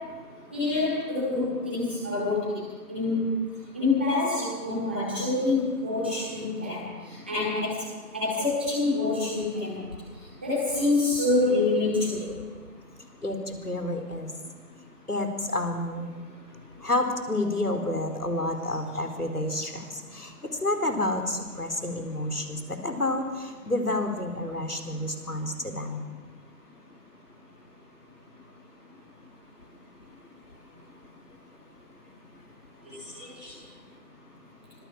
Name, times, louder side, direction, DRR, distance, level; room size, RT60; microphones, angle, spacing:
voice 1, 0.5-2.3 2.9-3.1 3.7-6.7 7.3-7.6 8.1-9.7 10.4-12.0 33.1-33.5, left 3 dB, 5° right, -11 dB, 2.9 m, -26 dB
voice 2, 13.2-14.3 15.1-16.1 16.8-26.0, left 1 dB, 70° left, 6 dB, 4.5 m, -29 dB
25.5 x 21.5 x 7.4 m, 1.5 s
figure-of-eight pair, 175°, 48 cm